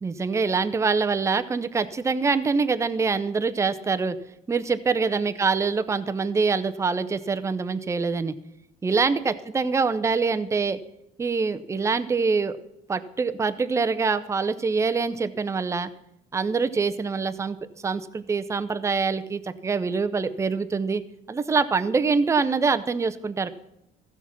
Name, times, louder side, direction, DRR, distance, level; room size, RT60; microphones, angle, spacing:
voice 1, 0.0-4.2 4.5-8.3 8.8-10.8 11.2-12.6 12.9-15.9 16.3-17.6 17.8-21.0 21.3-23.5, right 4 dB, 15° right, 10 dB, 0.5 m, -25 dB
15.0 x 5.8 x 5.9 m, 0.85 s
cardioid pair, 115°, 17 cm